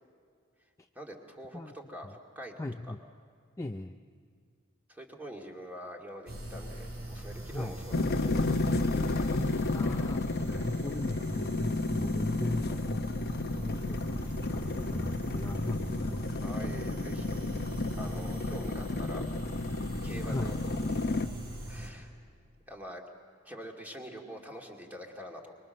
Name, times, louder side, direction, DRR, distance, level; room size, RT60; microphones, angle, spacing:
voice 1, 0.9-2.9 4.9-9.3 10.5-10.7 16.4-17.5 17.9-19.2 20.0-20.8 21.7-22.1 22.7-23.1 23.5-25.6, equal, 10° right, 0 dB, 2.4 m, -45 dB
voice 2, 2.6-3.0 3.6-4.0 7.5-7.8 9.7-13.1 13.6-16.5 20.3-20.6, left 2 dB, 15° left, 5 dB, 0.5 m, -37 dB
sound 1, 6.3-21.9, right 1 dB, 75° right, 5.6 m, -40 dB
sound 2, 7.9-21.3, left 2 dB, 50° left, 0.8 m, -32 dB
25.0 x 23.0 x 6.6 m, 2.2 s
head